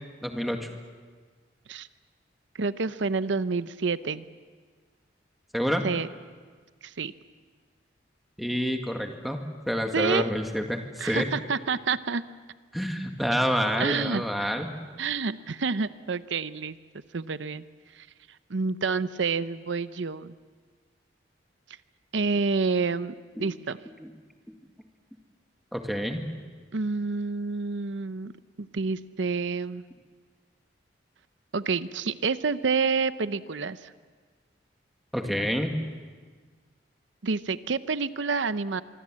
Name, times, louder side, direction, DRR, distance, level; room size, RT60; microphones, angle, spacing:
voice 1, 0.2-0.7 5.5-5.8 8.4-11.3 12.7-14.7 23.4-23.5 24.0-24.1 24.5-24.6 25.7-26.2 35.1-35.8, equal, ahead, 3 dB, 1.9 m, -28 dB
voice 2, 2.6-4.3 5.8-6.1 6.8-7.1 9.9-10.3 11.0-12.2 13.8-14.5 15.0-16.8 17.1-17.6 18.0-18.1 18.5-20.3 22.1-23.8 26.7-28.3 28.6-29.8 31.5-33.9 37.2-38.8, right 4 dB, 80° right, 14 dB, 0.7 m, -28 dB
24.5 x 24.5 x 7.6 m, 1.5 s
head